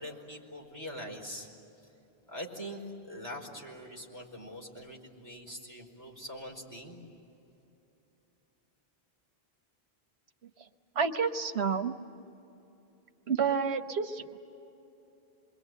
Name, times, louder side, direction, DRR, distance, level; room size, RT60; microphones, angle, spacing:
voice 1, 0.0-1.5 2.3-7.0, equal, 15° left, -2 dB, 4.6 m, -43 dB
voice 2, 10.9-11.9 13.3-14.4, right 6 dB, 90° right, 7 dB, 1.4 m, -29 dB
27.5 x 22.5 x 9.1 m, 3.0 s
omnidirectional pair, 1.1 m